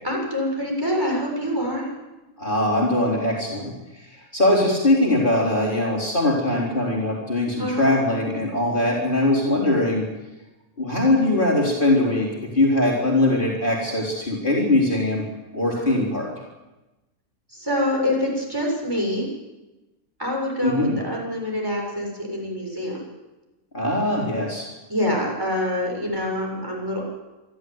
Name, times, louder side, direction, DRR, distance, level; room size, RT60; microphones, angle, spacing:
voice 1, 0.0-1.9 7.6-7.8 15.8-16.0 17.5-19.3 20.2-23.0 24.9-27.1, left 1 dB, 15° right, -1 dB, 7.2 m, -26 dB
voice 2, 2.4-3.7 4.3-10.0 10.8-12.3 12.5-15.2 15.5-16.3 20.6-21.0 23.7-24.7, left 1 dB, 35° left, -3 dB, 3.9 m, -21 dB
27.0 x 12.0 x 9.4 m, 1.1 s
omnidirectional pair, 1.5 m